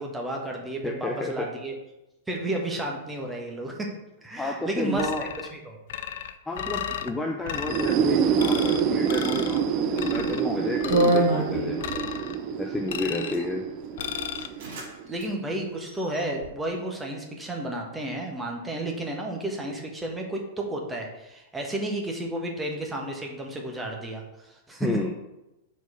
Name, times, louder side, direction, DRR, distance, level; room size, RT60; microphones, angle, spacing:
voice 1, 0.0-1.7 2.3-3.9 4.2-5.8 15.1-24.9, right 1 dB, 10° right, 0 dB, 1.3 m, -32 dB
voice 2, 0.8-1.5 4.4-5.3 6.4-12.1 12.6-13.7 24.8-25.1, left 2 dB, 10° left, 1 dB, 0.6 m, -31 dB
sound 1, 5.0-5.5 5.9-7.1 7.5-7.9 8.4-8.8 9.1-9.6 10.0-10.4 10.8-11.3 11.8-12.4 12.9-13.4 14.0-14.5, left 10 dB, 60° left, 0.4 m, -34 dB
sound 2, 7.5-15.2, right 7 dB, 40° right, 0.6 m, -27 dB
sound 3, 10.1-10.3 10.9-12.0 13.0-13.4 14.0-14.1 14.4-14.9 15.1-15.3 15.8-16.5, right 1 dB, 55° right, 1.7 m, -26 dB
4.6 x 4.2 x 5.5 m, 0.95 s
figure-of-eight pair, 100°, 0 cm